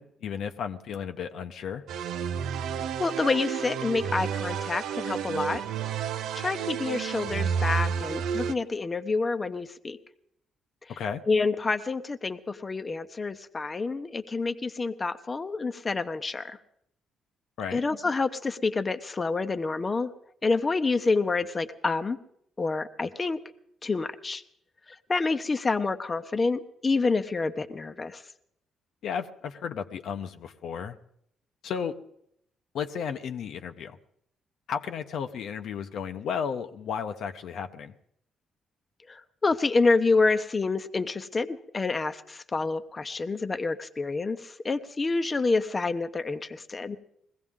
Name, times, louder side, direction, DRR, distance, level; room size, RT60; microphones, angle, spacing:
voice 1, 0.0-1.8 10.9-11.2 17.6-17.8 29.0-31.0 31.6-32.0 32.7-34.0 34.7-37.9, left 7 dB, 70° left, 7 dB, 0.8 m, -33 dB
sound 1, 1.9-8.5, right 7 dB, 80° right, 0.5 m, -31 dB
voice 2, 3.0-5.6 6.3-10.0 11.3-16.6 17.7-20.1 20.4-22.2 22.6-23.4 23.8-24.4 24.9-28.2 39.1-47.0, left 3 dB, 30° left, 9 dB, 0.8 m, -28 dB
21.0 x 15.5 x 3.7 m, 0.71 s
cardioid pair, 90°, 0 cm